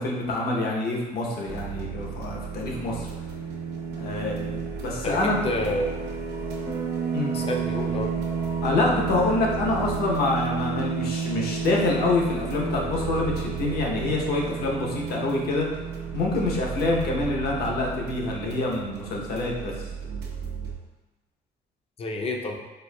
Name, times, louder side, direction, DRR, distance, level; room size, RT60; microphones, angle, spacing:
voice 1, 0.0-3.1 3.9-5.5 7.1-7.3 8.6-15.7 16.1-19.9, left 2 dB, 65° left, -1 dB, 0.8 m, -26 dB
sound 1, 1.5-20.8, right 6 dB, 80° right, 0.7 m, -32 dB
voice 2, 5.0-6.0 7.3-8.1 22.0-22.6, left 1 dB, 35° left, 2 dB, 0.5 m, -29 dB
Bass guitar, 6.7-12.9, right 6 dB, 25° right, 0.6 m, -37 dB
4.3 x 2.6 x 2.2 m, 1.1 s
cardioid pair, 110°, 17 cm